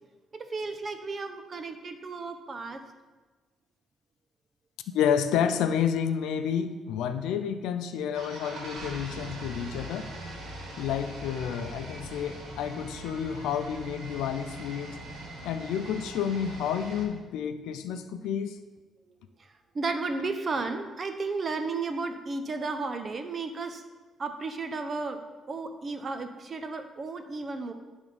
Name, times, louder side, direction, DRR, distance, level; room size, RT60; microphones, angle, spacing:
voice 1, 0.3-2.8 19.7-23.8 24.2-25.2 25.5-27.7, right 3 dB, 40° right, 7 dB, 0.8 m, -33 dB
voice 2, 4.9-10.1 10.8-15.0 15.4-18.6, left 8 dB, 90° left, 9 dB, 0.5 m, -30 dB
sound 1, 8.1-17.1, right 2 dB, 85° right, 2.0 m, -41 dB
10.5 x 3.6 x 5.1 m, 1.3 s
cardioid pair, 90°, 0 cm